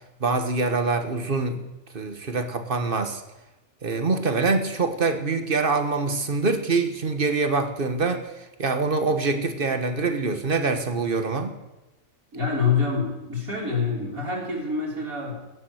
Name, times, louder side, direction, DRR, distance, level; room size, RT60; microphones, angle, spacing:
voice 1, 0.2-1.6 1.9-3.2 3.8-11.5, right 3 dB, 40° right, 8 dB, 1.5 m, -25 dB
voice 2, 12.3-15.4, left 5 dB, 80° right, -4 dB, 3.9 m, -26 dB
16.0 x 7.5 x 8.0 m, 1.0 s
omnidirectional pair, 1.5 m